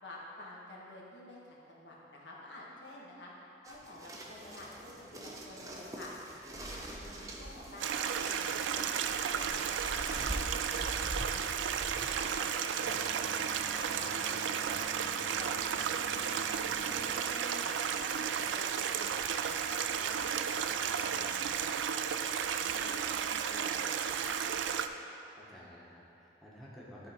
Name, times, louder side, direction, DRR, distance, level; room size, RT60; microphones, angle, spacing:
voice 1, 0.0-3.3 3.6-6.1 6.4-9.0 9.3-9.5 9.9-11.8 12.2-13.3 13.5-14.9 15.3-16.3 16.6-19.1 19.5-22.0 22.4-24.4, left 1 dB, 80° left, -4 dB, 1.4 m, -50 dB
sound 1, 3.6-17.4, right 1 dB, 20° right, 0.6 m, -45 dB
Stream, 7.8-24.9, right 7 dB, 90° right, 0.3 m, -33 dB
voice 2, 25.3-27.1, equal, ahead, -7 dB, 1.1 m, -52 dB
11.5 x 3.9 x 4.4 m, 2.8 s
head